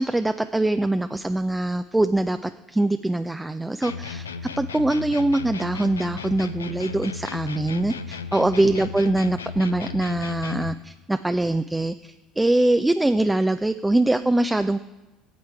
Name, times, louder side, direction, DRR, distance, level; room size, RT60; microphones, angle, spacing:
voice 1, 0.0-4.3 4.6-14.8, right 2 dB, 10° right, 9 dB, 0.3 m, -23 dB
sound 1, 3.8-10.8, left 5 dB, 85° left, 0.4 m, -35 dB
8.8 x 7.2 x 4.6 m, 1.1 s
hypercardioid pair, 65°, 0 cm